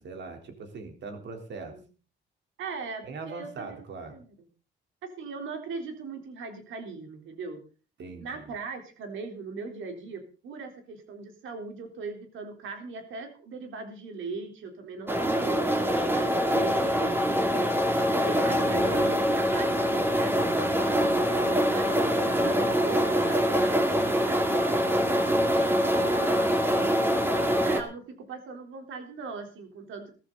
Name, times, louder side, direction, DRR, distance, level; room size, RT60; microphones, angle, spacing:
voice 1, 0.0-1.7 3.0-4.2 8.0-8.5 16.6-17.7 25.9-27.4 27.7-27.8, right 4 dB, 65° right, 4 dB, 3.8 m, -42 dB
voice 2, 2.6-4.3 5.2-7.6 8.2-17.3 18.1-20.3 20.9-25.5 26.0-26.5 27.6-28.0 28.3-30.0, right 4 dB, 80° right, 4 dB, 3.8 m, -39 dB
sound 1, 15.1-27.8, equal, 10° right, 2.4 m, -24 dB
15.0 x 14.0 x 4.0 m, 0.37 s
cardioid pair, 90°, 20 cm